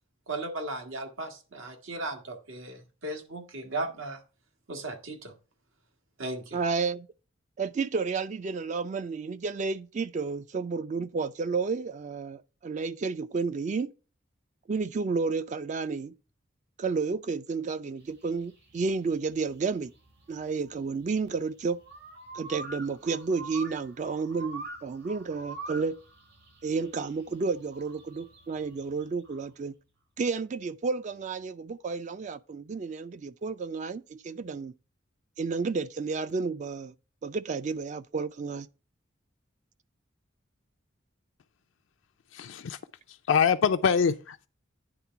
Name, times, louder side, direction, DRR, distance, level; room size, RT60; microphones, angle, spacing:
voice 1, 0.3-4.2 4.7-5.3 6.2-6.6, right 2 dB, 90° right, 1.6 m, -36 dB
voice 2, 6.5-7.1 7.6-13.9 14.7-16.1 16.8-19.9 20.3-21.8 22.3-26.0 26.6-29.7 30.2-34.7 35.4-36.9 37.2-38.7, right 4 dB, 40° right, 0.3 m, -31 dB
sound 1, 18.1-29.5, right 3 dB, 70° right, 4.9 m, -45 dB
voice 3, 42.3-42.8 43.1-44.4, left 6 dB, 75° left, 0.4 m, -24 dB
9.8 x 3.6 x 5.8 m
head